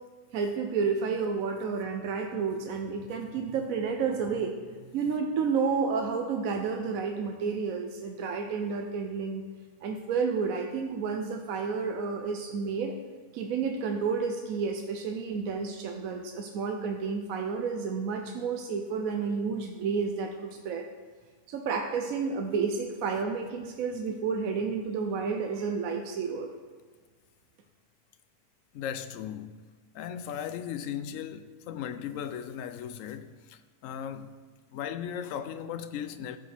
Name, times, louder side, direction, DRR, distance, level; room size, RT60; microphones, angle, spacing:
voice 1, 0.3-4.6 4.9-9.4 9.8-13.0 13.3-20.9 21.5-26.5, right 5 dB, 65° right, 1.0 m, -31 dB
voice 2, 28.7-29.5 29.9-34.3 34.7-36.4, left 9 dB, 70° left, 0.8 m, -37 dB
15.0 x 5.6 x 3.4 m
omnidirectional pair, 1.6 m